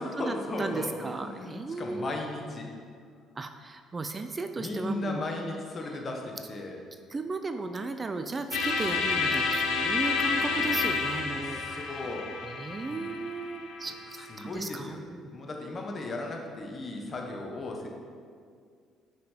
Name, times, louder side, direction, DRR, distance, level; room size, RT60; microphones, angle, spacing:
voice 1, 0.0-2.7 4.6-6.8 11.4-12.3 12.9-13.0 13.9-14.0 14.3-15.0 15.3-17.9, left 2 dB, 40° left, 1 dB, 1.2 m, -36 dB
voice 2, 0.6-2.1 3.4-5.2 7.1-12.0 12.6-15.3, right 3 dB, 30° right, 8 dB, 0.4 m, -35 dB
sound 1, 8.5-14.4, left 4 dB, 85° left, 0.8 m, -30 dB
5.8 x 5.5 x 5.0 m, 2.2 s
supercardioid pair, 85°, 0 cm